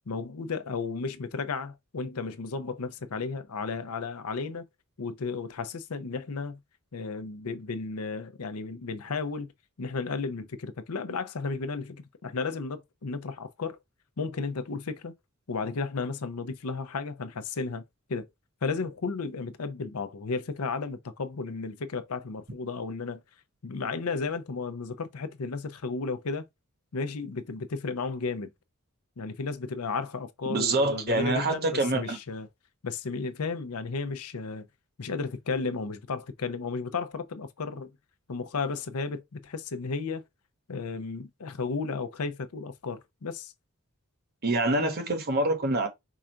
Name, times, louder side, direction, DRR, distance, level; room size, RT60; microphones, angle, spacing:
voice 1, 0.1-4.6 5.0-6.6 6.9-9.5 9.8-13.8 14.2-15.1 15.5-17.8 18.1-18.3 18.6-23.2 23.6-26.4 26.9-28.5 29.2-32.5 32.8-34.7 35.0-37.9 38.3-40.2 40.7-43.5, left 4 dB, 90° left, 0.7 m, -33 dB
voice 2, 30.5-32.2 44.4-45.9, right 2 dB, 45° right, 1.1 m, -26 dB
4.8 x 2.5 x 4.4 m
head